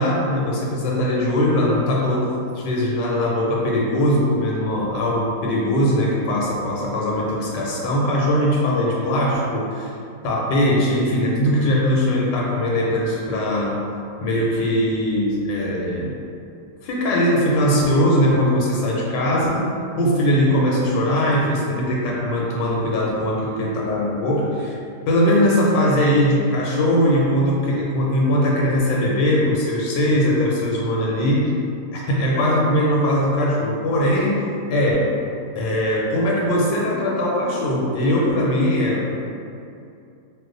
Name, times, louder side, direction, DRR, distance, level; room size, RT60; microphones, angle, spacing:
voice 1, 0.0-9.9 10.2-13.8 14.2-16.2 16.8-19.7 20.0-24.8 25.1-31.5 31.9-34.3 34.7-35.1 35.5-39.1, equal, 85° left, -4 dB, 1.2 m, -20 dB
2.5 x 2.4 x 3.7 m, 2.5 s
omnidirectional pair, 1.8 m